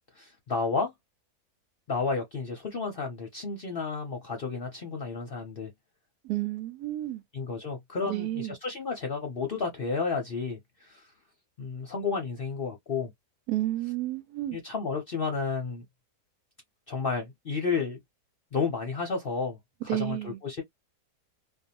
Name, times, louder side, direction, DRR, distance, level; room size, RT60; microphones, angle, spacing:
voice 1, 0.1-0.9 1.9-5.7 7.3-11.0 11.6-13.1 14.5-15.8 16.9-18.0 18.5-19.6 19.8-20.6, left 4 dB, 50° left, 0.7 m, -31 dB
voice 2, 6.2-7.2 8.0-8.5 13.5-14.6 19.9-20.4, right 14 dB, 75° right, 1.1 m, -31 dB
2.7 x 2.3 x 2.7 m
omnidirectional pair, 1.7 m